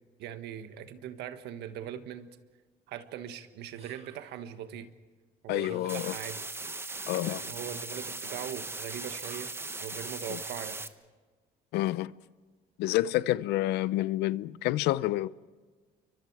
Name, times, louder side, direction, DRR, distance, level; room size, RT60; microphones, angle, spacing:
voice 1, 0.2-2.3 2.9-4.9 5.4-6.4 7.2-9.5 9.8-10.8, right 10 dB, 80° right, 1.5 m, -40 dB
sound 1, 3.7-4.5 5.5-6.7 9.1-9.8, right 5 dB, 35° right, 2.0 m, -55 dB
voice 2, 5.5-6.1 7.1-7.4 10.3-10.4 11.7-12.1 12.8-15.3, left 16 dB, 85° left, 0.6 m, -28 dB
sound 2, 5.9-10.9, right 3 dB, 15° right, 1.1 m, -39 dB
29.0 x 24.0 x 4.7 m
cardioid pair, 110°, 17 cm